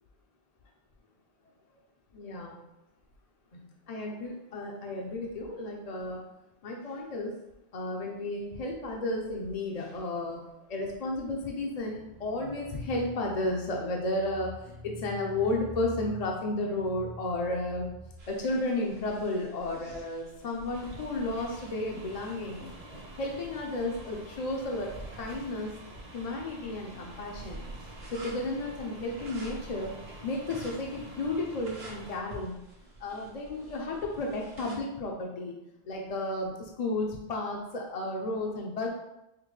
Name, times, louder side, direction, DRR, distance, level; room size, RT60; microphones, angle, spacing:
voice 1, 2.1-2.6 3.5-6.2 6.6-7.3 7.7-10.4 10.7-17.9 18.3-22.6 23.2-25.7 26.1-27.6 28.1-29.9 30.2-32.6 33.0-35.5 35.8-38.9, left 2 dB, 50° left, -1 dB, 0.5 m, -33 dB
sound 1, 11.9-18.1, equal, 75° left, 1.8 m, -45 dB
sound 2, 18.2-34.8, right 1 dB, 75° right, 1.2 m, -49 dB
sound 3, 20.7-32.2, right 1 dB, 45° right, 0.9 m, -48 dB
5.7 x 2.1 x 3.1 m, 0.90 s
omnidirectional pair, 1.0 m